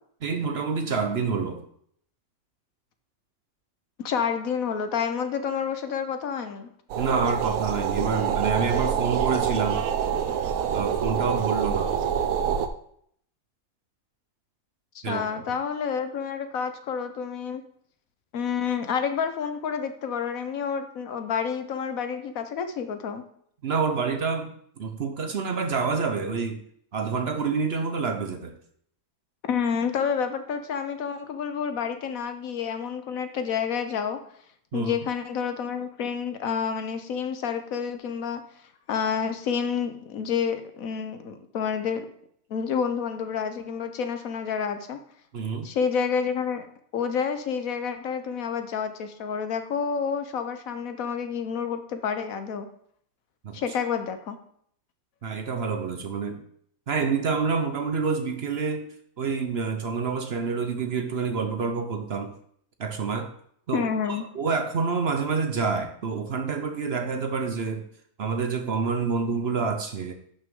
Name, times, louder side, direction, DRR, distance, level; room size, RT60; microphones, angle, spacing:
voice 1, 0.2-1.7 7.0-9.8 10.7-11.9 15.0-15.5 23.6-26.6 26.9-28.5 34.7-34.9 45.3-45.7 53.4-53.6 55.2-56.4 56.9-58.9 59.2-62.3 62.8-63.3 63.7-63.9 64.3-67.9 68.2-70.1, right 5 dB, 50° right, 7 dB, 0.9 m, -27 dB
voice 2, 4.0-6.7 14.9-17.6 18.3-23.2 29.5-34.2 34.7-38.4 38.9-42.0 42.5-45.0 45.6-46.7 46.9-52.7 53.5-54.4 63.7-64.2, left 6 dB, 70° left, 9 dB, 1.3 m, -29 dB
sound 1, 6.9-12.7, right 8 dB, 70° right, 1.1 m, -26 dB
11.0 x 6.2 x 3.7 m, 0.66 s
omnidirectional pair, 1.5 m